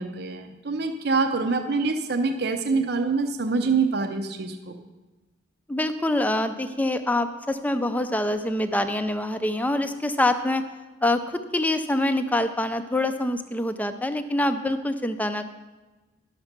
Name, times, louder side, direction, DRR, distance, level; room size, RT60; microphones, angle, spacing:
voice 1, 0.0-4.8, right 4 dB, 55° right, 5 dB, 0.7 m, -25 dB
voice 2, 5.7-10.6 11.0-15.5, left 1 dB, 10° left, 9 dB, 0.5 m, -25 dB
11.5 x 6.6 x 5.9 m, 1.2 s
head